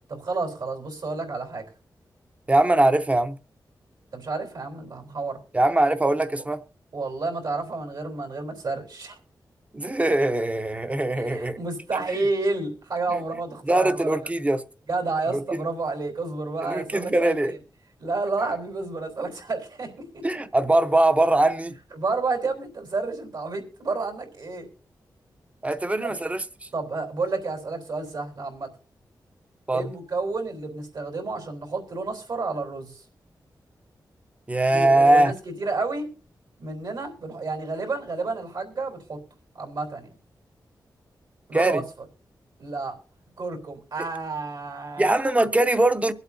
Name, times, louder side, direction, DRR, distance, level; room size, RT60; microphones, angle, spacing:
voice 1, 0.1-1.7 4.1-5.4 6.9-9.2 11.2-14.2 14.9-17.6 18.0-20.4 21.9-24.7 26.0-26.1 26.7-28.7 29.7-33.0 34.7-36.1 36.6-39.2 39.6-40.1 41.5-41.8 42.6-43.0 43.4-45.1, right 3 dB, 70° right, 3.6 m, -30 dB
voice 2, 2.5-3.4 5.5-6.6 9.7-11.6 13.1-13.2 13.6-14.6 15.3-15.4 16.6-17.5 20.2-21.7 25.6-26.7 29.7-29.9 34.5-35.3 41.5-41.8 45.0-46.1, right 2 dB, 20° right, 0.8 m, -21 dB
23.5 x 8.1 x 2.7 m
wide cardioid pair, 95°, 7 cm